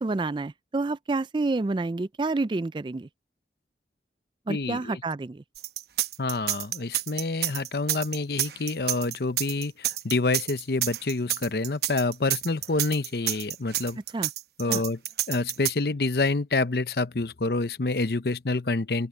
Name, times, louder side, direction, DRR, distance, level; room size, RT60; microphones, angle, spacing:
voice 1, 0.0-3.1 4.5-5.4 14.1-14.3 14.7-14.8, right 3 dB, 25° right, 0.3 m, -28 dB
voice 2, 4.5-5.0 6.2-14.0 14.6-15.0 15.3-19.1, left 3 dB, 65° left, 0.8 m, -27 dB
sound 1, 5.6-15.7, right 13 dB, 65° right, 0.9 m, -29 dB
open air
head